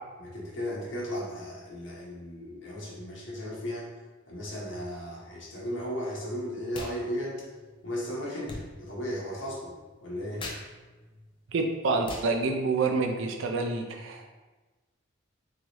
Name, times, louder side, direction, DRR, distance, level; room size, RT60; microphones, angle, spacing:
voice 1, 0.2-3.9 4.3-7.5 7.8-9.7 10.0-10.5, equal, 70° left, -4 dB, 1.0 m, -35 dB
sound 1, 6.7-7.0 7.2-13.4, left 2 dB, 25° left, 0.4 m, -45 dB
voice 2, 11.5-14.3, right 3 dB, 80° right, 4 dB, 0.5 m, -28 dB
3.9 x 2.9 x 3.0 m, 1.2 s
head